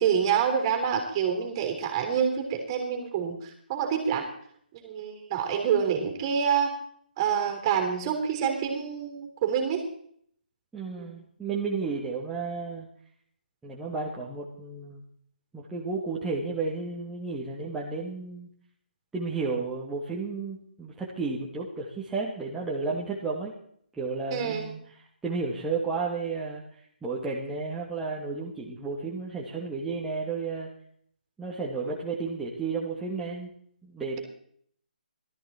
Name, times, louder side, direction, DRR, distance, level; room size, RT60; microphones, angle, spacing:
voice 1, 0.0-4.3 4.8-6.7 7.2-9.9 11.0-11.1 24.3-24.7, right 7 dB, 25° right, 4 dB, 3.4 m, -27 dB
voice 2, 10.7-12.9 13.6-15.0 15.5-18.5 19.1-23.5 23.9-24.8 25.2-26.6 27.0-30.7 31.4-33.5 33.8-34.2, right 4 dB, 5° right, -6 dB, 1.7 m, -32 dB
16.5 x 13.5 x 4.3 m, 0.63 s
figure-of-eight pair, 150°, 5 cm